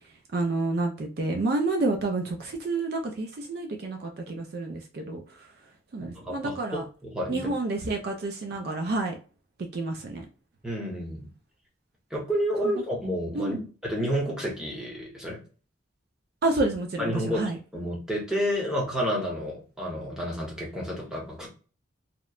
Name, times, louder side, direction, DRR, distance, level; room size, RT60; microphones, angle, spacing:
voice 1, 0.3-5.5 5.9-6.8 7.3-9.2 9.7-10.3 12.6-12.7 13.3-13.7 16.4-17.6, right 2 dB, 50° right, 3 dB, 0.4 m, -29 dB
voice 2, 6.0-7.5 10.6-11.3 12.1-15.4 17.0-17.4 17.7-21.5, equal, 5° right, -4 dB, 0.8 m, -30 dB
2.9 x 2.1 x 2.3 m, 0.37 s
head